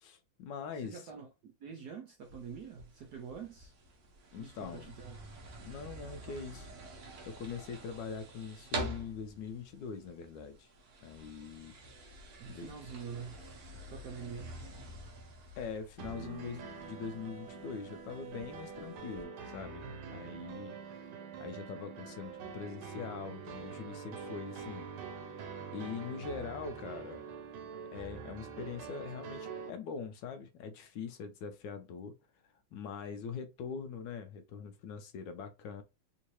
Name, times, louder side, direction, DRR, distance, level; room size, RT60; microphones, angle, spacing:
voice 1, 0.0-1.1 4.3-4.9 5.6-6.7 7.2-10.7 11.0-11.7 12.4-12.7 15.6-21.1 21.4-24.9 25.7-27.3 27.9-32.2 32.7-35.8, left 6 dB, 75° left, 1.1 m, -43 dB
voice 2, 0.7-3.7 4.3-5.2 12.4-13.4 13.9-14.5, right 6 dB, 75° right, 0.9 m, -46 dB
sound 1, 2.2-19.2, right 2 dB, 55° right, 1.2 m, -47 dB
sound 2, 16.0-29.7, right 5 dB, 90° right, 1.6 m, -45 dB
3.7 x 2.6 x 3.0 m
omnidirectional pair, 2.2 m